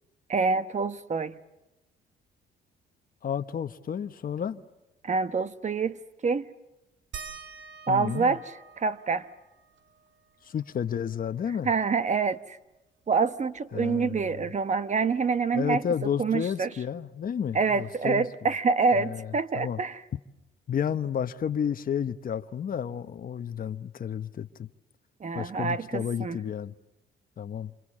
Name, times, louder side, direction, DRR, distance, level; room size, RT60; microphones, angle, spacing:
voice 1, 0.3-1.4 5.0-6.5 7.9-8.4 8.8-9.3 11.6-12.6 13.1-15.8 16.2-16.7 17.5-20.0 25.2-26.4, right 4 dB, 35° right, 1.1 m, -26 dB
voice 2, 3.2-4.6 7.9-8.4 10.4-11.7 13.7-14.4 15.5-18.3 18.9-19.8 20.7-24.7 25.3-26.8 27.4-27.7, left 8 dB, 45° left, 0.9 m, -31 dB
sound 1, 7.1-12.3 12.6-12.7 13.0-14.8 16.1-16.2 16.9-17.0, right 6 dB, 70° right, 2.3 m, -49 dB
27.5 x 27.0 x 7.4 m
cardioid pair, 90°, 20 cm